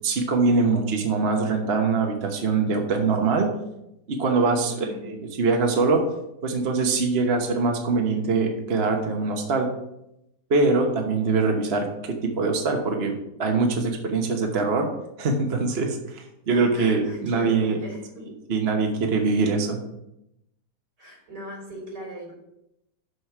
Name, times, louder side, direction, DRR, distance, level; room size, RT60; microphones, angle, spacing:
voice 1, 0.0-3.5 4.1-6.0 6.4-9.7 10.5-13.1 13.4-14.9 15.2-17.8 18.5-19.8, right 4 dB, 45° right, 2 dB, 1.1 m, -23 dB
voice 2, 4.6-5.1 16.5-18.4 21.0-22.3, equal, 75° right, -2 dB, 4.1 m, -39 dB
6.4 x 6.3 x 5.9 m, 0.85 s
omnidirectional pair, 1.8 m